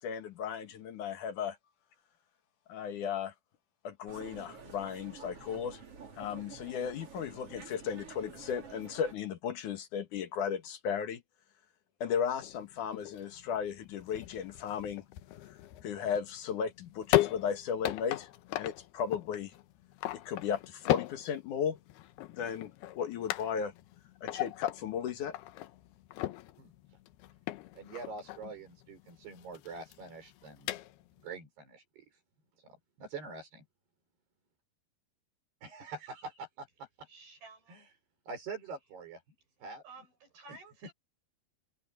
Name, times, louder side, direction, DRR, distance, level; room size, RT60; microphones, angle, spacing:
voice 1, 0.0-1.6 2.7-3.3 3.8-5.8 6.2-11.2 12.0-15.0 15.8-18.3 18.6-19.5 20.1-21.8 22.3-22.7 23.0-23.7 24.2-25.3, left 7 dB, 60° left, 2.7 m, -35 dB
sound 1, 4.1-9.1, right 5 dB, 35° right, 4.4 m, -50 dB
sound 2, 12.4-31.3, left 15 dB, 80° left, 2.9 m, -37 dB
voice 2, 27.8-30.7 31.2-32.1 32.6-33.6 35.6-37.1 37.7-37.9 38.3-39.2 39.6-39.8, right 4 dB, 85° right, 8.2 m, -45 dB
voice 3, 37.1-37.8 39.8-40.9, right 3 dB, 65° right, 8.3 m, -53 dB
omnidirectional pair, 4.6 m